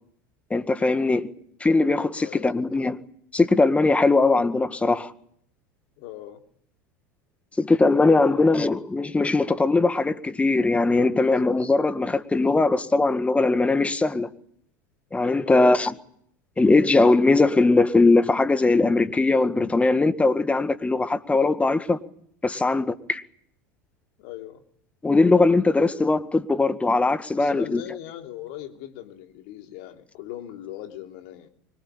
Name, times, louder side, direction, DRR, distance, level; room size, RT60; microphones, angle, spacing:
voice 1, 0.5-1.3 1.6-3.0 3.3-5.1 7.6-14.3 15.1-15.9 16.6-22.0 22.4-23.2 25.0-27.8, left 3 dB, 15° left, 1.9 m, -20 dB
voice 2, 2.2-2.5 6.0-6.4 8.2-8.5 15.4-15.8 24.2-24.6 27.3-31.5, left 13 dB, 60° left, 3.3 m, -39 dB
25.0 x 23.0 x 8.8 m
hypercardioid pair, 80°, 10 cm